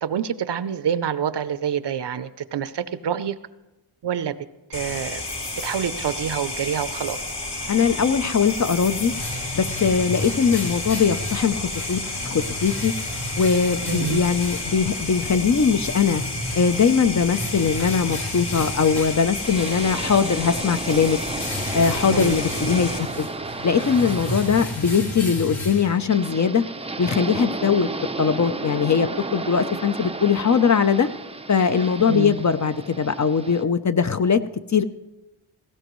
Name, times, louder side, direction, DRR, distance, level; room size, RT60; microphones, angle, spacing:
voice 1, 0.0-3.4 4.0-4.4 4.7-5.2 5.6-7.2 13.9-14.2 22.1-22.4 32.1-32.4, right 8 dB, 55° right, 14 dB, 0.6 m, -27 dB
sound 1, 4.7-23.0, left 2 dB, 55° left, 2.8 m, -31 dB
voice 2, 7.7-9.1 9.5-12.9 13.4-16.2 16.6-21.2 21.7-23.3 23.6-26.6 27.0-27.9 28.2-31.1 31.5-34.4 34.7-34.8, left 6 dB, 35° left, 10 dB, 0.5 m, -21 dB
sound 2, 8.8-26.4, left 1 dB, 70° left, 3.1 m, -34 dB
sound 3, 19.4-33.6, right 3 dB, 15° right, 0.5 m, -33 dB
18.5 x 16.0 x 3.1 m, 1.0 s
wide cardioid pair, 95°, 49 cm